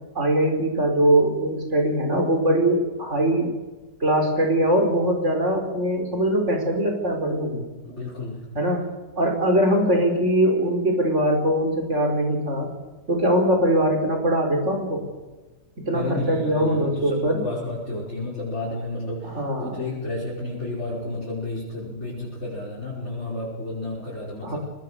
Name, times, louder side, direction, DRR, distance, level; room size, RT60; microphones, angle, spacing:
voice 1, 0.1-3.5 4.0-7.6 8.5-8.9 9.2-12.7 13.1-15.0 15.8-17.4 19.2-19.9 24.4-24.6, right 1 dB, 45° right, 2 dB, 4.9 m, -22 dB
voice 2, 7.8-8.4 15.9-24.6, left 2 dB, 40° left, -7 dB, 6.1 m, -31 dB
24.0 x 20.0 x 6.7 m, 1.2 s
omnidirectional pair, 1.8 m